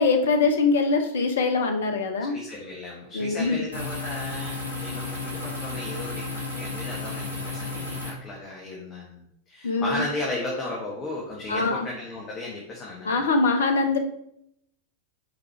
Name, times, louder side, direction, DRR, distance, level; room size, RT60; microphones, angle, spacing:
voice 1, 0.0-2.3 3.1-3.7 9.6-10.0 11.5-11.9 13.0-14.0, left 3 dB, 65° left, 5 dB, 1.0 m, -23 dB
voice 2, 2.3-9.2 9.5-13.2, left 2 dB, 30° left, -3 dB, 1.5 m, -35 dB
sound 1, 3.7-8.1, left 3 dB, 80° left, 2.3 m, -33 dB
8.0 x 4.6 x 3.2 m, 0.73 s
figure-of-eight pair, 90°, 0 cm